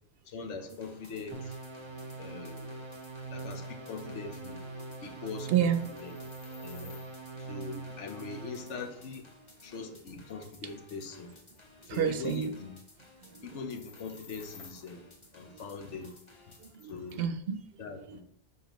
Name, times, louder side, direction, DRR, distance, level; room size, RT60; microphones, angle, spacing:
voice 1, 0.3-1.6 2.2-2.7 3.3-4.6 5.0-5.7 6.0-6.2 6.6-7.0 7.4-9.3 9.6-11.3 11.9-12.8 13.4-15.0 15.3-16.2 16.8-17.2 17.8-18.2, left 4 dB, 85° left, 6 dB, 1.1 m, -41 dB
sound 1, 0.7-16.8, left 2 dB, 30° left, 0.8 m, -57 dB
sound 2, 1.3-8.9, right 3 dB, 25° right, 0.7 m, -42 dB
sound 3, 3.0-3.1 3.4-3.5 4.0-4.1 4.3-4.5 5.2-7.2 9.6-9.7 10.1-10.6 10.9-11.0 11.3-11.9 12.2-12.5 13.7-14.9 16.0-17.2, left 5 dB, 45° left, 0.5 m, -55 dB
voice 2, 5.5-6.0 7.7-7.9 11.8-12.5 13.2-13.6 15.5-15.6 16.6-18.2, right 8 dB, 65° right, 10 dB, 0.7 m, -32 dB
7.1 x 5.6 x 3.0 m, 0.75 s
omnidirectional pair, 1.2 m